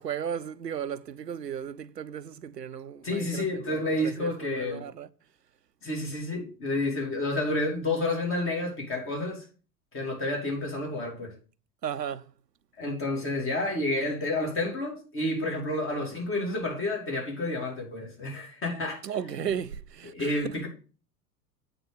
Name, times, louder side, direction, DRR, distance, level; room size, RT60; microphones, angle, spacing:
voice 1, 0.0-5.1 11.8-12.3 19.0-20.6, right 8 dB, 90° right, 0.6 m, -35 dB
voice 2, 3.0-4.8 5.8-9.5 9.9-11.3 12.8-19.0 20.1-20.7, left 2 dB, 25° left, 2.8 m, -30 dB
8.0 x 3.8 x 6.7 m
figure-of-eight pair, 85°, 47 cm